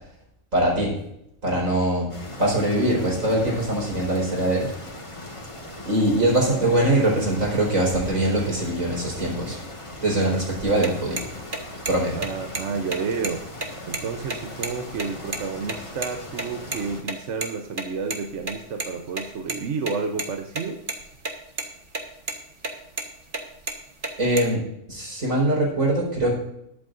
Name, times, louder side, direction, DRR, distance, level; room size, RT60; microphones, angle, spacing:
voice 1, 0.5-1.0 1.4-2.1 2.4-4.7 5.9-9.6 10.0-11.2 11.9-12.2 24.2-24.6 24.9-26.3, right 1 dB, 85° right, -3 dB, 4.9 m, -22 dB
sound 1, 2.1-17.0, left 1 dB, 25° left, 1.6 m, -39 dB
sound 2, 10.7-15.8 16.0-16.1 16.4-16.5 16.7-16.8 17.1-17.2 17.4-17.5 17.8-18.9 19.1-19.6 19.9-20.6 20.9-21.3 21.6-22.0 22.3-22.4 22.6-23.1 23.3-24.5, right 3 dB, 40° right, 1.5 m, -30 dB
voice 2, 12.1-13.4 13.9-20.8, right 5 dB, 65° right, 5 dB, 1.2 m, -30 dB
21.0 x 8.6 x 2.6 m, 0.77 s
omnidirectional pair, 1.4 m